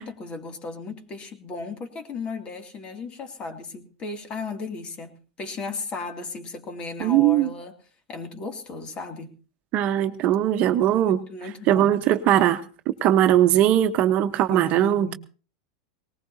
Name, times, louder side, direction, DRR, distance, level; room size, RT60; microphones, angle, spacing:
voice 1, 0.0-7.7 8.1-9.3 11.0-12.1 14.5-15.1, left 3 dB, 30° left, 6 dB, 2.5 m, -36 dB
voice 2, 7.0-7.5 9.7-11.2 11.7-12.6 13.0-15.1, right 12 dB, 45° right, 9 dB, 1.0 m, -20 dB
19.0 x 19.0 x 2.8 m, 0.38 s
hypercardioid pair, 110°, 3 cm